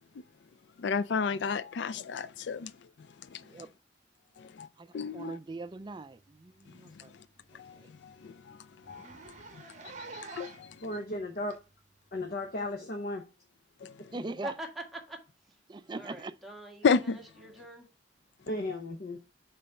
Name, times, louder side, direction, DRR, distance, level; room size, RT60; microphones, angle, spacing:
voice 1, 0.8-2.7 3.3-3.4 4.4-4.7 4.9-5.4 6.9-7.0 7.5-8.6 8.9-9.1 9.5-9.6 10.1-10.8 13.8-14.0 16.8-17.2, left 5 dB, 75° left, 0.4 m, -31 dB
voice 2, 5.1-7.1 14.1-14.5 15.7-16.3, right 3 dB, 25° right, 0.4 m, -40 dB
Zipper (clothing), 6.2-6.4 6.7-6.8 7.2-7.3 7.6-7.7 8.0-8.1 8.8-10.8 11.5-11.6 12.6-12.7, right 3 dB, 40° right, 0.9 m, -47 dB
voice 3, 10.8-11.6 12.1-13.2 18.5-19.2, left 1 dB, 55° left, 0.8 m, -35 dB
voice 4, 14.4-15.2 15.9-17.9, equal, ahead, 1.6 m, -43 dB
5.5 x 4.0 x 5.3 m
head